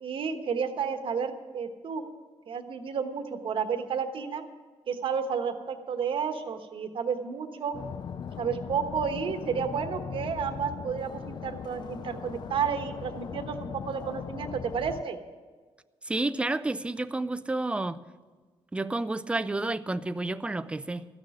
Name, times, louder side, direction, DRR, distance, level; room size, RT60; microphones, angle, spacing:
voice 1, 0.0-2.0 2.5-4.4 4.9-7.7 8.4-15.2, right 6 dB, 60° right, 6 dB, 1.2 m, -31 dB
sound 1, 7.7-15.0, left 7 dB, 45° left, 0.4 m, -39 dB
voice 2, 16.0-18.0 18.7-21.1, right 2 dB, 10° right, 13 dB, 0.4 m, -30 dB
14.5 x 6.5 x 9.8 m, 1.4 s
cardioid pair, 115°, 10 cm